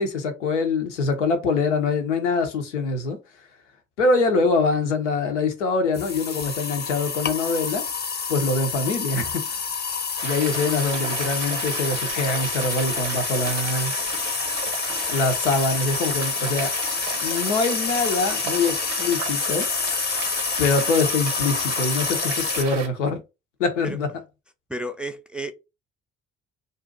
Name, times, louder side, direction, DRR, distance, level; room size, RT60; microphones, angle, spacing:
voice 1, 0.0-3.2 4.0-7.8 8.3-9.6 10.2-13.9 15.1-16.7 17.2-19.7 20.6-23.2 23.6-24.1, left 3 dB, 85° left, 0.6 m, -24 dB
sound 1, 5.9-22.6, left 5 dB, 30° left, 0.7 m, -28 dB
sound 2, 10.2-22.9, right 7 dB, 85° right, 0.6 m, -34 dB
voice 2, 24.7-25.5, right 1 dB, 5° right, 0.3 m, -32 dB
2.5 x 2.2 x 3.7 m
figure-of-eight pair, 45°, 35 cm